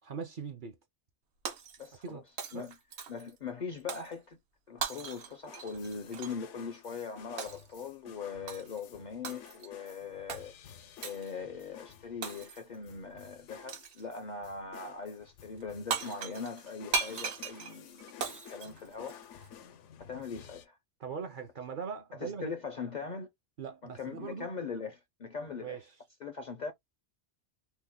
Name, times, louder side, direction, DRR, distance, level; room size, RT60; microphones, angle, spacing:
voice 1, 0.0-0.8 2.0-2.2 2.5-2.7 21.0-22.5 23.6-24.5 25.5-25.9, right 6 dB, 55° right, 0.6 m, -40 dB
Shatter, 1.5-2.1 2.4-3.3 3.9-4.1 4.8-6.4 7.4-7.7 8.5-8.8 9.2-9.7 10.3-10.5 11.0-11.3 12.2-12.8 13.7-14.1 15.6-15.7 15.9-19.5, right 5 dB, 70° right, 1.0 m, -38 dB
voice 2, 1.8-2.2 2.5-2.7 3.1-4.4 4.7-10.6 11.0-19.5 20.0-20.8 22.1-23.3 23.8-25.8 26.2-26.7, left 5 dB, 55° left, 0.5 m, -41 dB
sound 1, 5.1-20.7, left 8 dB, 90° left, 0.9 m, -53 dB
2.9 x 2.1 x 3.5 m
omnidirectional pair, 1.2 m